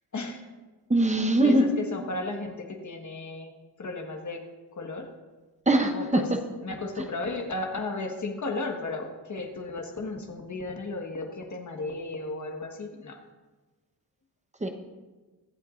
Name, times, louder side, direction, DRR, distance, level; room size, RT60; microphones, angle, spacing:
voice 1, 0.9-1.7 5.7-6.2 14.6-14.7, right 1 dB, 15° right, 5 dB, 1.0 m, -21 dB
voice 2, 1.4-3.5 3.8-4.4 4.7-5.1 5.9-6.3 6.6-13.2, left 2 dB, 45° left, 2 dB, 1.5 m, -34 dB
23.5 x 8.1 x 2.6 m, 1.3 s
wide cardioid pair, 145°, 41 cm